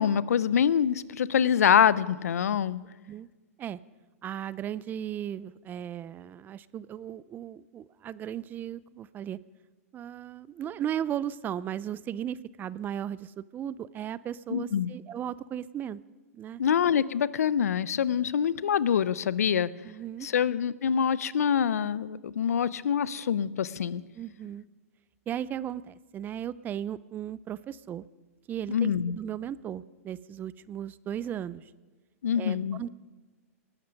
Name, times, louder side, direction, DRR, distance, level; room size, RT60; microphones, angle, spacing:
voice 1, 0.0-2.8 14.5-14.9 16.6-19.7 20.2-24.0 28.7-29.2 32.2-32.8, left 8 dB, 85° left, 19 dB, 0.6 m, -25 dB
voice 2, 4.2-9.4 9.9-16.0 16.3-16.6 19.8-20.3 24.2-24.6 25.3-28.0 28.5-31.7 32.4-32.9, right 10 dB, 20° right, 19 dB, 0.4 m, -36 dB
19.0 x 12.0 x 5.2 m, 1.2 s
hypercardioid pair, 125°, 8 cm